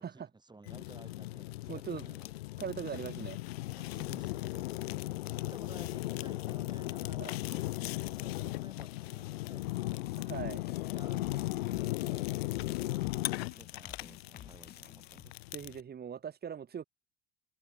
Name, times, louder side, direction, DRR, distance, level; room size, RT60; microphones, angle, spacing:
voice 1, 0.0-2.3 3.8-7.6 8.0-10.1 10.9-15.3, right 3 dB, 15° right, 5.4 m, -56 dB
Fire, 0.7-15.8, left 19 dB, 65° left, 0.5 m, -37 dB
voice 2, 1.7-2.0 2.6-3.4 7.2-7.3 10.2-10.6 15.5-16.8, right 8 dB, 30° right, 2.9 m, -40 dB
sound 1, 10.0-15.2, left 9 dB, 30° left, 1.4 m, -53 dB
figure-of-eight pair, 65°, 33 cm